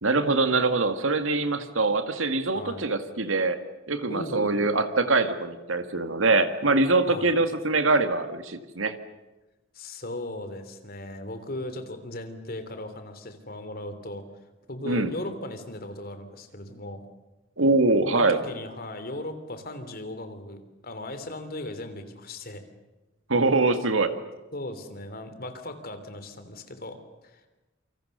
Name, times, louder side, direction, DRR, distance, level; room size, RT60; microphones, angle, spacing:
voice 1, 0.0-3.6 3.9-8.9 14.8-15.1 17.6-18.4 23.3-24.1, right 3 dB, 90° right, 8 dB, 2.1 m, -23 dB
voice 2, 2.5-2.8 4.1-4.7 7.1-7.3 9.7-14.2 14.7-17.1 18.1-22.7 24.5-27.4, left 1 dB, 50° left, 9 dB, 3.4 m, -37 dB
28.0 x 25.5 x 6.8 m, 1.1 s
head